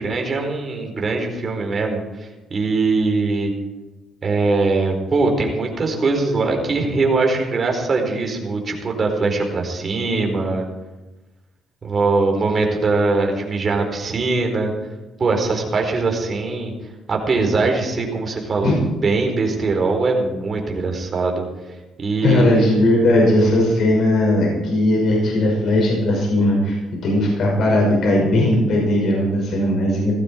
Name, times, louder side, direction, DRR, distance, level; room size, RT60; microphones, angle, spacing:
voice 1, 0.0-3.5 4.2-10.7 11.8-14.7 15.2-16.7 17.1-18.7 19.0-21.5 22.0-22.8, right 3 dB, 40° right, 2 dB, 4.4 m, -21 dB
voice 2, 22.2-30.1, left 1 dB, 65° left, -2 dB, 5.6 m, -18 dB
18.0 x 15.0 x 4.6 m, 1.1 s
cardioid pair, 105°, 0 cm